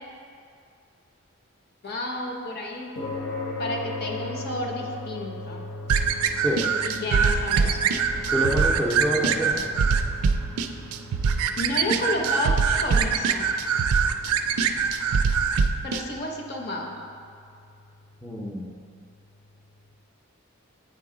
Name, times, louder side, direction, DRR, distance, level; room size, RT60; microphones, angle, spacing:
voice 1, 1.8-3.0 3.6-5.6 6.8-7.9 11.6-13.5 15.8-17.0, left 1 dB, 45° left, 1 dB, 0.7 m, -31 dB
sound 1, 3.0-19.5, left 2 dB, 70° left, 1.0 m, -40 dB
sound 2, 5.9-16.0, right 6 dB, 90° right, 0.3 m, -23 dB
voice 2, 6.3-6.7 8.3-9.6 18.2-18.8, equal, 5° left, -4 dB, 0.4 m, -27 dB
8.6 x 3.8 x 3.7 m, 2.3 s
head